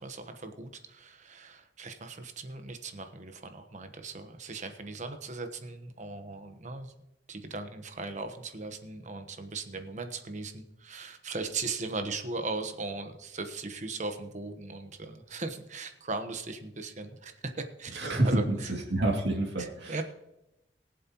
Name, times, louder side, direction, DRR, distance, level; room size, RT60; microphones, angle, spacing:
voice 1, 0.0-6.9 7.3-18.7 19.6-20.0, right 3 dB, 45° right, 7 dB, 1.1 m, -38 dB
voice 2, 17.9-18.4 18.7-20.0, right 1 dB, 70° right, -1 dB, 2.4 m, -28 dB
22.0 x 7.6 x 3.0 m, 0.90 s
head